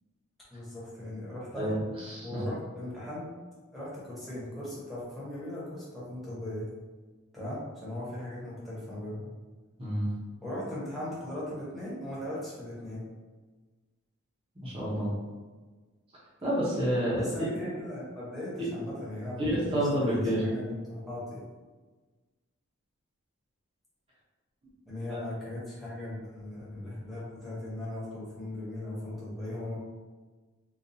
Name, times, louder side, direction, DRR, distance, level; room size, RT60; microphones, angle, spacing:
voice 1, 0.5-1.8 2.2-3.2 3.7-6.7 7.3-9.3 10.4-13.0 17.1-20.1 20.4-21.4 24.8-29.8, left 1 dB, ahead, -9 dB, 1.0 m, -38 dB
voice 2, 1.6-2.4 9.8-10.1 14.6-15.1 16.4-17.5 18.6-18.7 19.4-20.4 25.1-25.2, equal, 25° right, -9 dB, 0.8 m, -29 dB
3.8 x 2.5 x 2.7 m, 1.3 s
head